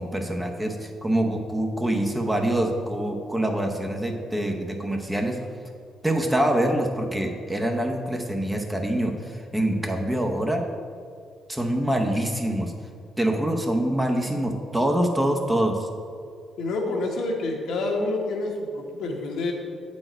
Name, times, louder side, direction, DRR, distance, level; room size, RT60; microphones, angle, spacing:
voice 1, 0.0-5.4 6.0-10.6 11.5-12.7 13.2-15.9, right 1 dB, 10° right, 2 dB, 0.8 m, -25 dB
voice 2, 16.6-19.5, left 2 dB, 75° left, 0 dB, 1.1 m, -28 dB
7.9 x 4.4 x 4.4 m, 2.2 s
cardioid pair, 80°, 0 cm